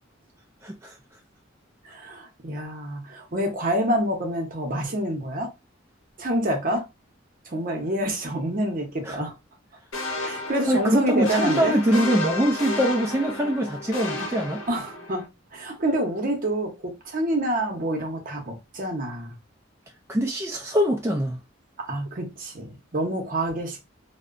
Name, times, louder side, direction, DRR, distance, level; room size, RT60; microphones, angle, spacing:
voice 1, 0.6-1.0 9.1-9.2 10.7-14.6 20.1-21.4, equal, 15° right, 0.3 m, -23 dB
voice 2, 1.8-5.5 6.2-6.9 7.5-9.3 10.2-11.7 14.7-15.2 15.5-19.4 21.8-23.8, right 1 dB, 45° right, 0.7 m, -27 dB
sound 1, 9.9-15.3, left 2 dB, 85° left, 0.8 m, -32 dB
2.7 x 2.1 x 2.4 m
head